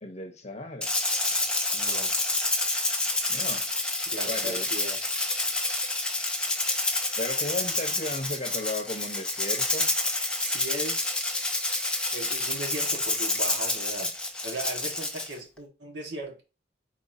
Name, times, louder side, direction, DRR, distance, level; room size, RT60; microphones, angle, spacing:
voice 1, 0.0-1.0 3.3-3.7 4.3-4.7 7.2-9.9, left 1 dB, 35° left, 0.9 m, -35 dB
Rattle (instrument), 0.8-15.3, left 2 dB, 5° left, 0.6 m, -28 dB
voice 2, 1.7-2.1 4.1-5.0 10.4-11.1 12.1-14.1 14.4-16.4, right 1 dB, 70° right, 1.5 m, -37 dB
4.4 x 4.2 x 2.7 m
head